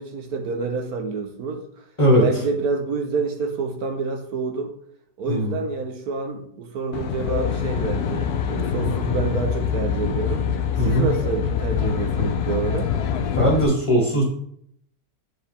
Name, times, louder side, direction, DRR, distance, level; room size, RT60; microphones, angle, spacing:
voice 1, 0.0-1.6 2.2-4.7 5.2-10.4 10.8-12.9, right 4 dB, 75° right, 5 dB, 1.3 m, -28 dB
Aircraft, 6.9-13.6, left 7 dB, 75° left, 1.1 m, -25 dB
voice 2, 10.8-11.1 13.3-14.2, equal, 20° left, -2 dB, 2.2 m, -19 dB
9.6 x 4.9 x 3.4 m, 0.66 s
omnidirectional pair, 1.7 m